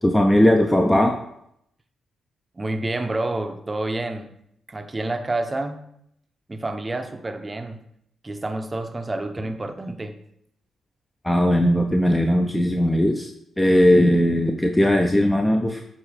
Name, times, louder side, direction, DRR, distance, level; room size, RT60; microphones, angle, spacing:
voice 1, 0.0-1.2 11.2-13.3 13.6-15.9, equal, 15° left, 3 dB, 0.6 m, -18 dB
voice 2, 2.6-4.3 4.7-5.8 6.5-7.8 8.2-10.2, right 2 dB, 30° right, 7 dB, 0.7 m, -28 dB
7.9 x 2.8 x 5.0 m, 0.73 s
hypercardioid pair, 45°, 0 cm